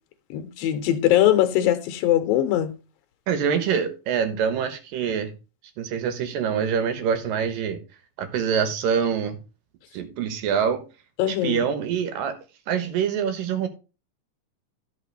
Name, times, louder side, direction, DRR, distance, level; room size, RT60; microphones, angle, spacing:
voice 1, 0.3-2.7 11.2-11.6, left 12 dB, 85° left, 2.7 m, -21 dB
voice 2, 3.3-5.3 5.8-7.8 8.2-9.4 9.9-10.8 11.3-12.4 12.7-13.7, right 7 dB, 80° right, 2.9 m, -25 dB
12.0 x 5.9 x 3.3 m
omnidirectional pair, 4.0 m